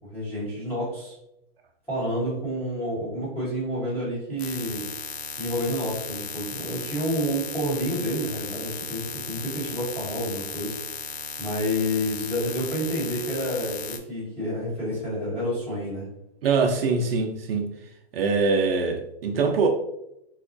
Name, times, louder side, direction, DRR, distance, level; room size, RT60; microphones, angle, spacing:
voice 1, 0.1-1.1 1.9-4.9 5.4-16.1, equal, 5° left, -10 dB, 1.0 m, -29 dB
sound 1, 4.4-14.0, left 6 dB, 75° left, 0.6 m, -36 dB
voice 2, 16.4-17.7 18.1-19.7, right 4 dB, 65° right, 2 dB, 0.6 m, -23 dB
4.0 x 2.2 x 2.5 m, 0.82 s
hypercardioid pair, 175°, 32 cm